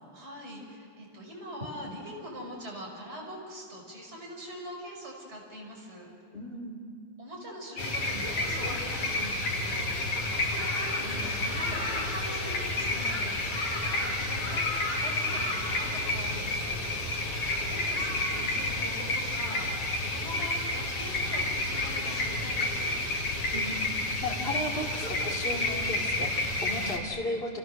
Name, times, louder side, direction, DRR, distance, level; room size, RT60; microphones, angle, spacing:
voice 1, 0.1-6.1 7.2-16.8 17.6-22.9, equal, 30° right, -2 dB, 5.8 m, -43 dB
voice 2, 6.3-6.8 23.5-23.9 24.2-27.6, left 1 dB, 25° left, -1 dB, 3.1 m, -35 dB
sound 1, 7.8-27.0, left 2 dB, 70° left, 3.9 m, -30 dB
29.5 x 28.5 x 6.6 m, 2.3 s
omnidirectional pair, 2.4 m